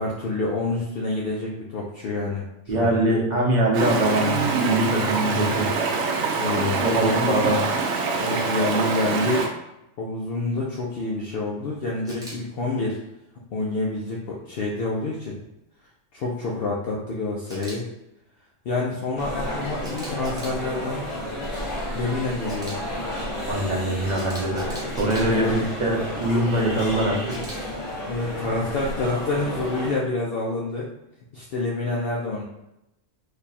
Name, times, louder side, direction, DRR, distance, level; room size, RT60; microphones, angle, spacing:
voice 1, 0.0-2.5 2.8-3.0 6.3-7.4 8.2-9.5 10.0-13.0 13.5-15.3 16.1-17.8 18.7-21.1 21.9-22.8 25.3-25.7 28.1-30.9 31.3-32.4, left 2 dB, 60° left, -3 dB, 0.7 m, -27 dB
voice 2, 2.7-5.7 6.8-7.6 23.4-24.6 24.9-27.3, right 1 dB, 40° right, -3 dB, 0.9 m, -23 dB
Stream, 3.7-9.5, right 4 dB, 70° right, 0.9 m, -25 dB
Camera, 12.1-12.4 17.5-17.8 19.8-20.6 22.5-22.8 24.1-25.2 27.3-27.6, right 1 dB, 5° right, 0.8 m, -40 dB
sound 1, 19.2-29.9, left 1 dB, 40° left, 1.7 m, -32 dB
3.2 x 2.3 x 4.0 m, 0.88 s
omnidirectional pair, 1.3 m